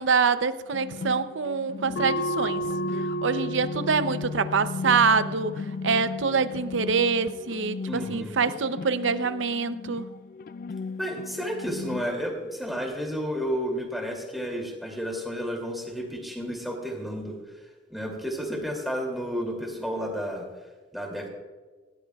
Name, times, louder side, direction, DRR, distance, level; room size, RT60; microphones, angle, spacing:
voice 1, 0.0-2.7 2.9-5.5 5.8-10.1, right 5 dB, 85° right, 0.7 m, -25 dB
sound 1, 0.7-12.1, left 4 dB, 50° left, 0.3 m, -37 dB
sound 2, 2.0-7.1, left 1 dB, 80° left, 0.9 m, -33 dB
voice 2, 7.9-8.3 11.0-20.4 20.9-21.3, equal, ahead, 2.7 m, -32 dB
19.5 x 17.5 x 2.4 m
head